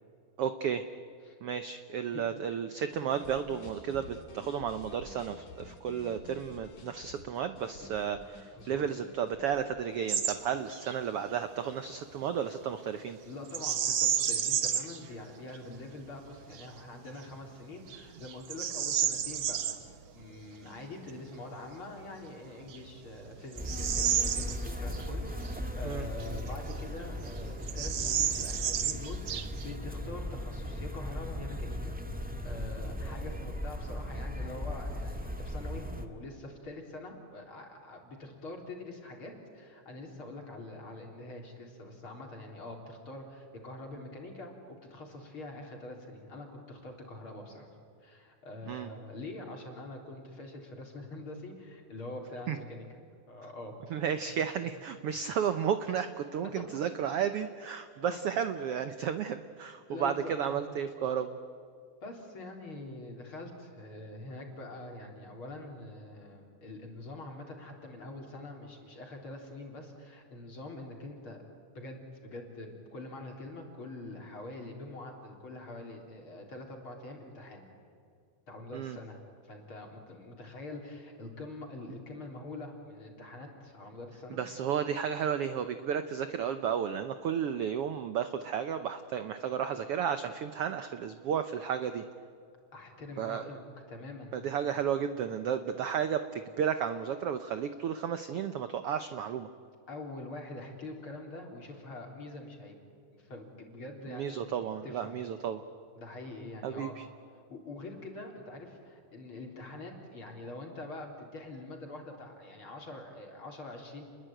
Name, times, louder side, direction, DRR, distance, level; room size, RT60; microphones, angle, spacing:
voice 1, 0.4-0.8 1.4-13.2 25.8-26.1 48.7-48.9 52.5-52.6 53.9-61.4 78.7-79.0 84.3-92.0 93.2-93.4 94.3-99.5 104.1-105.6 106.6-106.9, right 8 dB, 75° right, 10 dB, 1.4 m, -33 dB
sound 1, 2.9-11.0, left 3 dB, 70° left, 4.5 m, -51 dB
voice 2, 8.5-9.0 13.2-19.8 20.1-47.7 48.0-53.0 53.3-53.8 54.3-54.4 55.1-55.2 58.0-58.2 59.9-60.6 62.0-71.4 71.7-77.6 78.5-84.4 92.7-93.6 93.9-94.4 99.9-102.8 103.1-105.2 105.9-106.9 107.3-114.1, left 2 dB, 40° left, 1 dB, 4.5 m, -44 dB
Bird vocalization bird call bird song, 10.1-10.4 10.7-11.0 13.5-15.0 15.5-15.6 16.3-16.7 17.2-17.3 17.9-19.8 21.9-22.0 22.6-25.1 25.4-25.5 26.2-27.0 27.3-27.4 27.6-29.8, right 9 dB, 60° right, 1.8 m, -31 dB
sound 2, 23.6-36.0, left 1 dB, 10° right, 0.5 m, -37 dB
30.0 x 21.5 x 9.1 m, 2.4 s
omnidirectional pair, 3.7 m